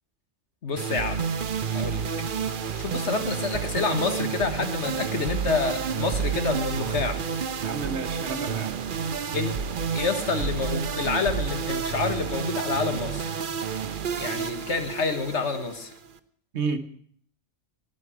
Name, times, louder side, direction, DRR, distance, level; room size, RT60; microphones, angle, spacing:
voice 1, 0.6-1.2 1.7-2.1 2.7-7.2 9.3-9.5 9.9-13.3 14.2-15.9, left 4 dB, 65° left, 7 dB, 1.8 m, -28 dB
sound 1, 0.8-16.2, right 6 dB, 50° right, 0.8 m, -30 dB
voice 2, 7.6-8.8 16.5-16.8, right 4 dB, 65° right, 11 dB, 1.4 m, -30 dB
11.0 x 9.7 x 9.9 m, 0.63 s
omnidirectional pair, 1.3 m